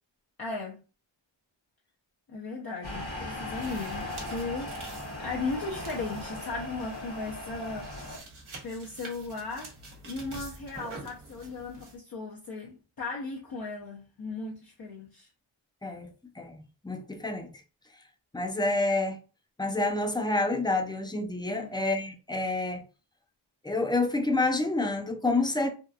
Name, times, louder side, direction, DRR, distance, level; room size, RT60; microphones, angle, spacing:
voice 1, 0.4-0.8 2.3-8.1 8.6-9.7 10.0-15.3 21.5-21.8, left 3 dB, 45° left, 0.6 m, -37 dB
sound 1, 2.8-8.2, left 1 dB, 65° left, 1.3 m, -38 dB
sound 2, 3.4-12.0, right 3 dB, 80° right, 0.9 m, -47 dB
voice 2, 16.4-17.5 18.3-19.2 19.6-22.8 23.6-25.7, left 2 dB, 10° left, 0.4 m, -28 dB
2.8 x 2.3 x 2.3 m
wide cardioid pair, 60°, 49 cm